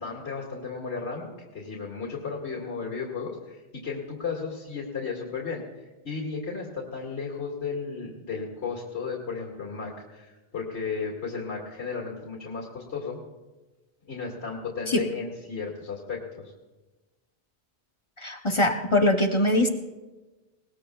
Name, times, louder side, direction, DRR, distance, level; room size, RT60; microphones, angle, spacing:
voice 1, 0.0-13.2 14.1-16.5, left 5 dB, 80° left, -4 dB, 2.3 m, -34 dB
voice 2, 18.2-19.7, left 1 dB, 30° left, 4 dB, 0.9 m, -22 dB
20.5 x 19.5 x 2.3 m, 1.2 s
omnidirectional pair, 1.1 m